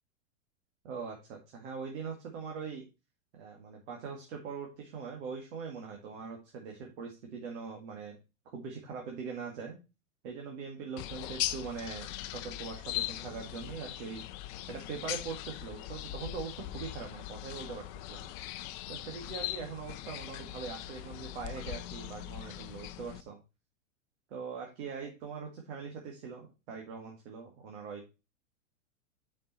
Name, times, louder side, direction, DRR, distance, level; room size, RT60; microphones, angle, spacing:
voice 1, 0.8-2.8 3.3-8.1 8.5-9.8 10.2-14.2 14.7-18.3 18.9-23.4 24.3-28.1, right 5 dB, 65° right, 1 dB, 2.0 m, -42 dB
sound 1, 11.0-23.2, left 14 dB, 40° left, 0.6 m, -40 dB
7.3 x 5.4 x 4.1 m, 0.28 s
hypercardioid pair, 130°, 39 cm